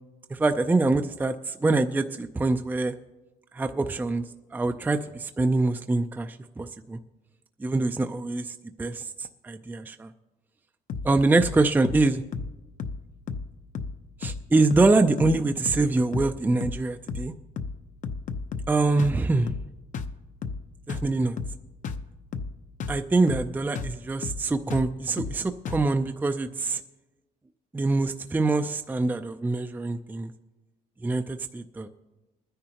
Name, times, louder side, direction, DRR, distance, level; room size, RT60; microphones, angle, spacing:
voice 1, 0.3-2.9 3.5-4.3 4.5-7.0 7.6-10.1 11.0-12.2 14.2-17.3 18.7-19.5 20.9-21.4 22.9-26.8 27.7-30.3 31.0-31.9, right 3 dB, 10° right, 7 dB, 0.4 m, -24 dB
sound 1, 10.9-11.1 11.4-11.6 11.8-12.1 12.3-12.5 12.8-13.0 13.3-13.5 13.7-14.0 14.2-14.4 14.7-14.9 15.2-15.4 15.7-15.9 16.1-16.4 16.6-16.8 17.1-17.3 17.6-17.8 18.0-18.7 19.0-19.2 19.5-19.7 19.9-20.2 20.4-20.6 20.9-21.1 21.4-21.6 21.8-22.1 22.3-22.5 22.8-23.0 23.3-23.5 23.8-24.0 24.2-24.4 24.7-24.9 25.2-25.4 25.7-25.9, left 5 dB, 50° left, 0.8 m, -33 dB
22.0 x 10.0 x 2.9 m, 1.1 s
cardioid pair, 110°, 17 cm